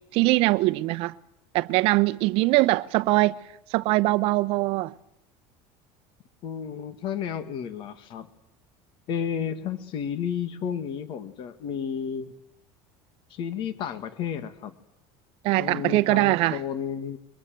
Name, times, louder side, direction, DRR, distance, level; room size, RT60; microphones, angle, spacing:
voice 1, 0.1-1.1 1.5-3.3 3.7-4.9 15.4-16.6, right 20 dB, 50° right, 0.9 m, -22 dB
voice 2, 6.4-8.3 9.1-12.3 13.3-14.7 15.6-17.2, left 8 dB, 40° left, 1.9 m, -32 dB
25.0 x 23.5 x 7.7 m
cardioid pair, 165°, 12 cm